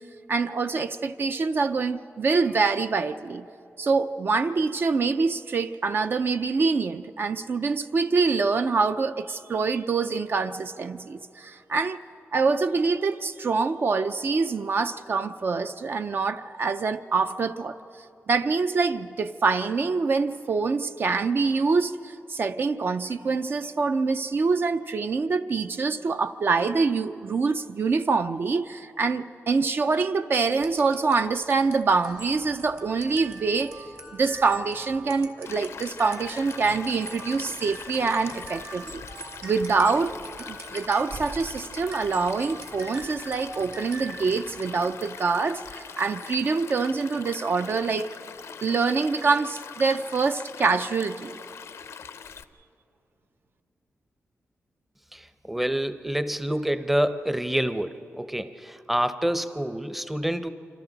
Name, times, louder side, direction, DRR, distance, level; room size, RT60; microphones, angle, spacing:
voice 1, 0.3-3.4 3.8-12.0 12.3-17.8 18.3-33.9 34.1-39.0 39.4-40.1 40.5-48.2 48.6-51.4, right 4 dB, 50° right, 9 dB, 0.5 m, -25 dB
sound 1, 30.6-45.0, right 3 dB, 65° right, 2.0 m, -44 dB
Stream, 35.4-52.4, left 7 dB, 80° left, 0.6 m, -42 dB
voice 2, 55.1-60.5, right 1 dB, 5° right, 11 dB, 0.6 m, -27 dB
27.0 x 26.5 x 4.0 m, 2.7 s
wide cardioid pair, 135°, 5 cm